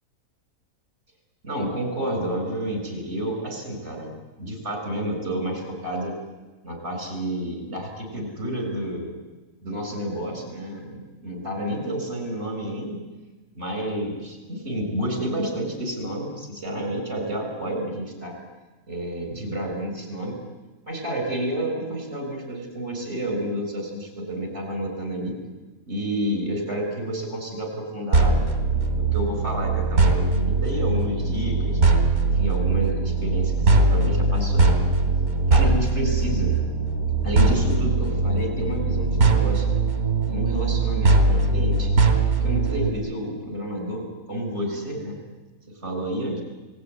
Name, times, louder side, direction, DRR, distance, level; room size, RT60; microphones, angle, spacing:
voice 1, 1.4-4.1 4.4-6.2 6.6-9.2 9.6-13.0 13.5-18.4 18.9-20.4 20.8-25.4 25.9-31.8 32.3-34.7 35.5-36.5 37.2-39.8 40.3-41.9 42.4-45.2 45.7-46.4, right 1 dB, 50° right, 3 dB, 7.1 m, -30 dB
sound 1, 28.1-42.9, right 3 dB, 90° right, 3.4 m, -21 dB
29.5 x 19.5 x 9.7 m, 1.2 s
omnidirectional pair, 1.5 m